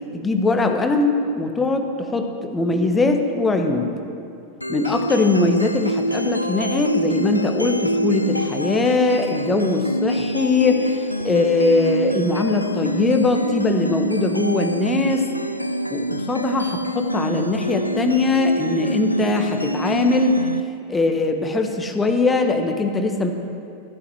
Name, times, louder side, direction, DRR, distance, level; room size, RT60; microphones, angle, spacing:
voice 1, 0.1-3.9 4.7-15.3 15.9-20.5 20.9-23.3, left 3 dB, 15° left, 5 dB, 1.3 m, -21 dB
sound 1, 4.6-20.6, equal, 85° left, 0.5 m, -26 dB
14.5 x 8.5 x 7.7 m, 2.5 s
figure-of-eight pair, 90°, 0 cm